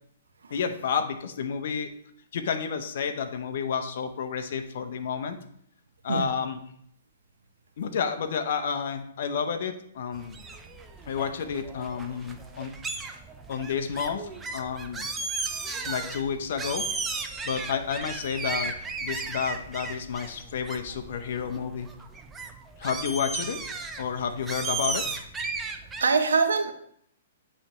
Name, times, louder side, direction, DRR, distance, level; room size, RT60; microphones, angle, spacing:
voice 1, 0.5-1.9 2.3-5.4 6.0-6.6 7.8-10.4 11.1-12.7 13.5-15.1 15.8-16.8 17.4-18.7 19.0-21.9 22.8-23.6 24.0-25.1, left 6 dB, 60° left, 7 dB, 0.7 m, -30 dB
sound 1, 10.1-26.0, right 4 dB, 10° right, 0.5 m, -35 dB
voice 2, 26.0-26.7, right 4 dB, 85° right, 6 dB, 0.8 m, -23 dB
9.9 x 3.3 x 3.1 m, 0.69 s
hypercardioid pair, 140°, 0 cm